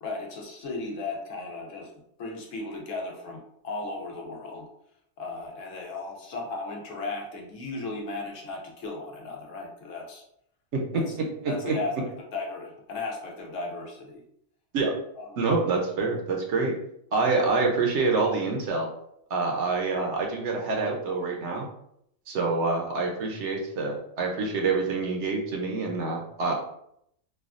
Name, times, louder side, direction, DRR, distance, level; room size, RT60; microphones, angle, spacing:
voice 1, 0.0-1.9 2.2-4.7 5.2-10.2 10.9-11.1 11.5-11.9 12.3-14.2 15.2-15.3, left 3 dB, 75° left, 0 dB, 1.1 m, -36 dB
voice 2, 11.4-11.8 14.7-14.9 15.4-16.7 17.1-18.9 19.3-21.7 22.3-26.5, right 3 dB, 65° right, 0 dB, 0.9 m, -26 dB
3.3 x 2.2 x 2.4 m, 0.73 s
omnidirectional pair, 1.3 m